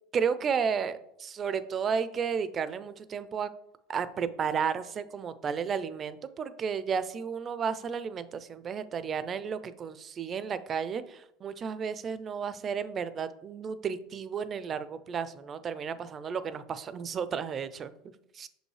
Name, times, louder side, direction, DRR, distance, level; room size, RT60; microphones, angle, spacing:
voice 1, 0.1-3.5 3.9-17.9 18.3-18.5, right 6 dB, 30° right, 14 dB, 0.4 m, -33 dB
5.9 x 5.3 x 3.2 m, 0.78 s
supercardioid pair, 135°, 0 cm